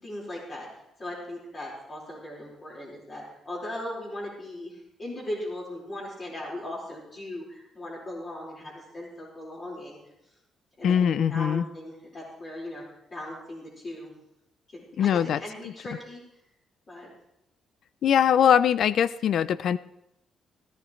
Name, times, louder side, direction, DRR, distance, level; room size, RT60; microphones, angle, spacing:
voice 1, 0.0-0.7 1.0-10.0 10.8-12.8 13.1-14.1 14.7-16.2 16.9-17.1, left 1 dB, 40° left, -6 dB, 4.8 m, -38 dB
voice 2, 10.8-11.6 15.0-15.7 18.0-19.8, left 9 dB, 65° left, 17 dB, 0.5 m, -22 dB
17.5 x 13.5 x 3.3 m, 0.83 s
cardioid pair, 90°, 0 cm